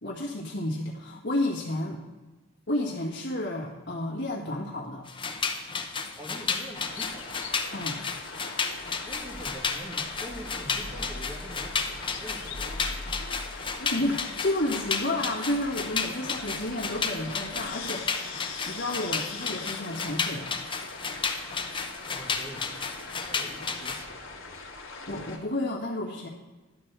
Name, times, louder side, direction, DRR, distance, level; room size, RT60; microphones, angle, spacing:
voice 1, 0.0-2.0 2.7-5.1 7.7-8.0 13.8-20.6 25.1-26.3, left 1 dB, 60° left, -4 dB, 1.7 m, -31 dB
sound 1, 5.1-24.0, left 5 dB, 25° left, 0.8 m, -33 dB
voice 2, 6.2-7.4 9.0-13.2 22.1-22.9 23.3-24.7, equal, 15° right, 0 dB, 1.7 m, -44 dB
sound 2, 6.7-25.4, left 3 dB, 80° left, 1.7 m, -41 dB
11.5 x 4.6 x 8.1 m, 1.2 s
head